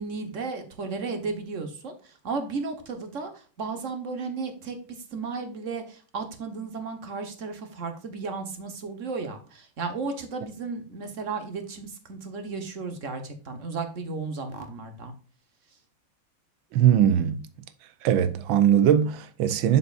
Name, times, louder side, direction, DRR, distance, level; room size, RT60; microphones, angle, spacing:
voice 1, 0.0-15.1, right 4 dB, 45° right, 1.3 m, -34 dB
voice 2, 16.7-17.4 18.0-19.8, right 9 dB, 75° right, 1.5 m, -20 dB
7.1 x 6.9 x 2.5 m
omnidirectional pair, 2.2 m